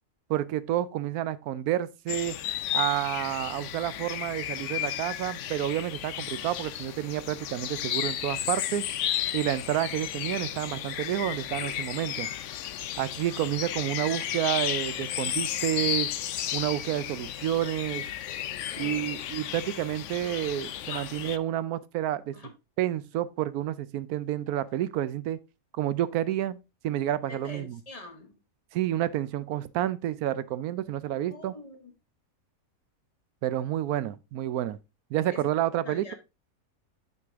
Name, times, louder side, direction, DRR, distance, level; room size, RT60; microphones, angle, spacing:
voice 1, 0.3-2.4 2.7-8.8 9.3-12.3 13.0-16.1 16.5-18.0 18.8-22.4 22.8-25.4 25.7-26.6 26.8-27.8 28.7-31.5 33.4-34.8 35.1-36.1, right 12 dB, 80° right, 1.0 m, -29 dB
sound 1, 2.1-21.4, left 11 dB, 65° left, 0.8 m, -33 dB
voice 2, 18.7-19.1 20.9-21.0 22.3-22.5 27.3-28.3 31.2-31.9 35.3-35.4 35.8-36.1, left 2 dB, 25° left, 1.3 m, -44 dB
6.2 x 5.9 x 3.4 m
omnidirectional pair, 1.6 m